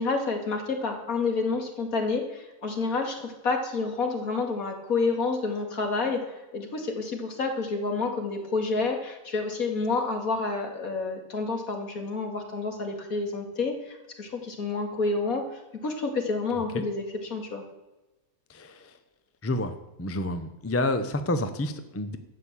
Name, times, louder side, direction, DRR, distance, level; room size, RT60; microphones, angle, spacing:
voice 1, 0.0-6.2 6.5-17.1 17.3-17.6, left 3 dB, 65° left, 3 dB, 2.5 m, -29 dB
voice 2, 18.5-18.9 19.4-19.7 20.0-22.2, left 1 dB, 15° left, 9 dB, 0.6 m, -29 dB
12.0 x 8.3 x 7.4 m, 1.0 s
omnidirectional pair, 1.6 m